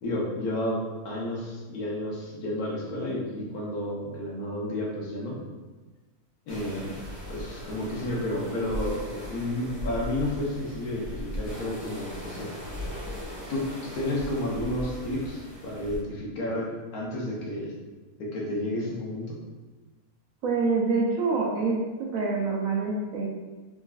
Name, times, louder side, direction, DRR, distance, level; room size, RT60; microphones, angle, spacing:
voice 1, 0.0-5.4 6.5-6.9 7.3-9.0 9.3-12.5 13.5-17.7 18.2-19.4, left 1 dB, 75° left, -3 dB, 1.3 m, -31 dB
sound 1, 6.5-16.0, equal, 10° right, 0.9 m, -38 dB
voice 2, 20.4-23.3, right 4 dB, 70° right, -2 dB, 1.0 m, -26 dB
3.6 x 3.0 x 2.4 m, 1.2 s
omnidirectional pair, 1.6 m